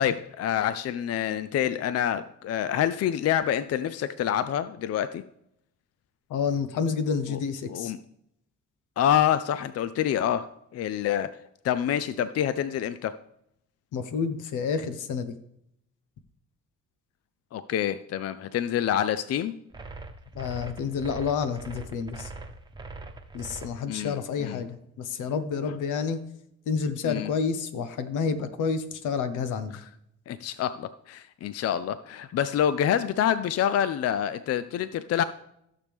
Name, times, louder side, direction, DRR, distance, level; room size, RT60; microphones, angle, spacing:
voice 1, 0.0-5.2 7.3-7.4 7.7-8.0 9.0-11.3 11.6-13.1 17.5-19.5 23.9-24.6 27.0-27.3 30.3-35.2, left 10 dB, 55° left, 14 dB, 0.5 m, -27 dB
voice 2, 6.3-7.9 13.9-15.3 20.3-22.3 23.3-26.2 26.7-29.8, left 5 dB, 80° left, 11 dB, 1.0 m, -29 dB
sound 1, 19.7-23.7, right 3 dB, 15° right, 1.1 m, -41 dB
15.0 x 6.7 x 3.5 m, 0.77 s
cardioid pair, 90°, 30 cm